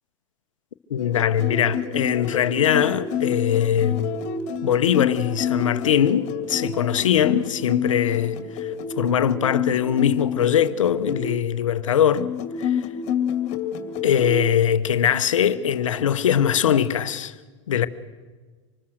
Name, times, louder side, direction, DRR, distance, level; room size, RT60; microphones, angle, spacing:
voice 1, 0.9-4.1 4.6-12.3 12.6-12.9 14.0-17.3 17.7-17.9, left 9 dB, 80° left, 1.1 m, -21 dB
sound 1, 1.0-11.3 12.1-14.4 15.5-16.0, left 7 dB, 45° left, 2.3 m, -28 dB
25.0 x 20.0 x 6.5 m
hypercardioid pair, 100°, 16 cm